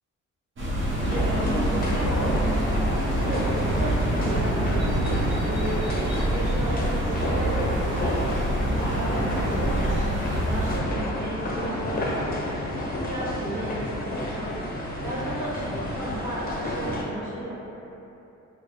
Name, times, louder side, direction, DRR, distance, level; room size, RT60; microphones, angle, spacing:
sound 1, 0.6-10.8, right 1 dB, 40° right, 0.8 m, -26 dB
sound 2, 1.0-17.0, left 1 dB, 30° left, 0.6 m, -30 dB
voice 1, 1.1-2.3 3.0-5.9 6.3-6.8 7.1-10.0 10.5-12.2 13.0-14.5 15.0-17.6, right 1 dB, 75° right, -8 dB, 1.2 m, -34 dB
4.5 x 2.3 x 2.9 m, 2.9 s
cardioid pair, 90°, 30 cm